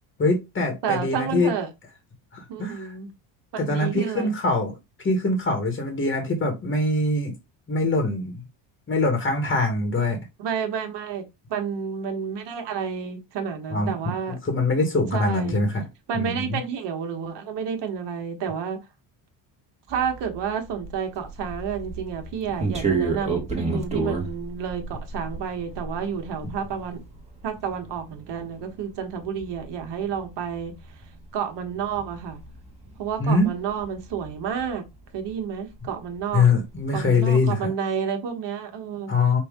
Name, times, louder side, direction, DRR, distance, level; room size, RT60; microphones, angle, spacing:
voice 1, 0.2-1.5 2.3-2.9 3.6-7.3 7.7-8.4 8.9-10.2 13.7-13.9 14.4-15.8 16.1-16.6 33.2-33.5 36.3-37.7 39.1-39.4, left 3 dB, 25° left, 1.4 m, -23 dB
voice 2, 0.8-1.7 2.5-3.1 3.5-4.3 10.4-11.2 11.5-14.4 15.1-15.6 16.1-18.8 19.9-27.0 27.4-30.7 31.3-32.4 33.0-34.8 35.1-36.5 36.9-39.1, right 7 dB, 60° right, 1.4 m, -30 dB
sound 1, 19.9-35.4 35.7-37.0, right 4 dB, 15° right, 1.4 m, -33 dB
5.3 x 2.7 x 3.6 m
cardioid pair, 110°, 46 cm